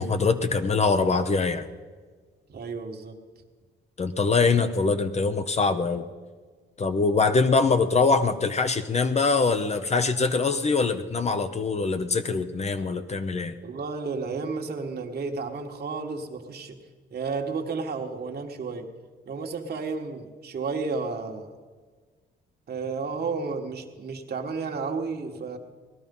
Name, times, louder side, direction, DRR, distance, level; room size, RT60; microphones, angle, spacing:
voice 1, 0.0-1.7 4.0-6.0 6.8-13.5, left 4 dB, 35° left, 9 dB, 0.9 m, -23 dB
voice 2, 2.5-3.2 13.6-16.8 17.1-18.9 19.2-21.5 22.7-25.6, right 4 dB, 50° right, 3 dB, 1.7 m, -32 dB
18.5 x 12.0 x 5.5 m, 1.5 s
cardioid pair, 90°, 20 cm